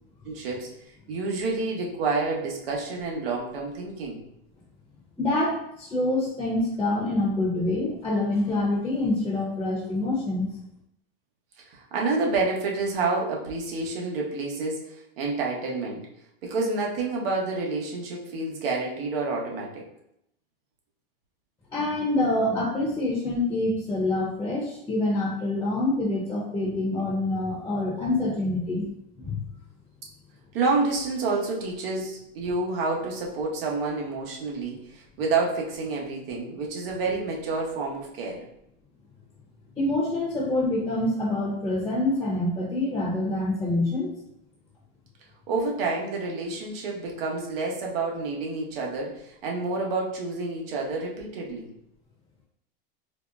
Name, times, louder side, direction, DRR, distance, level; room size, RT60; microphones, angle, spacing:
voice 1, 0.2-0.8 1.1-4.2 11.6-16.1 16.4-19.9 26.6-26.8 30.5-38.5 45.5-51.7, right 3 dB, 70° right, -1 dB, 1.0 m, -29 dB
voice 2, 5.2-10.5 21.7-28.9 29.2-29.4 39.8-44.1, left 2 dB, 10° left, -5 dB, 0.7 m, -26 dB
4.0 x 2.0 x 2.5 m, 0.77 s
supercardioid pair, 140°, 30 cm